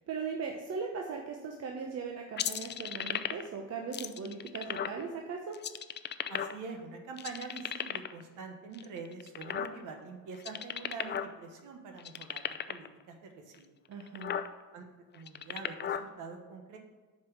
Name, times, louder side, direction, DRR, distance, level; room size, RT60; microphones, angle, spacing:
voice 1, 0.0-5.6 13.9-14.4, right 5 dB, 55° right, 1 dB, 0.9 m, -39 dB
sound 1, 2.4-3.6 3.9-5.0 5.5-6.8 7.2-8.2 8.7-10.0 10.3-11.3 11.6-11.7 12.0-12.9 13.5-13.6 14.0-14.5 15.1-16.0, left 8 dB, 35° left, 0.4 m, -35 dB
voice 2, 6.3-13.7 14.7-14.8 15.1-16.8, right 4 dB, 85° right, 4 dB, 1.2 m, -45 dB
5.5 x 4.7 x 6.4 m, 1.3 s
cardioid pair, 90°, 30 cm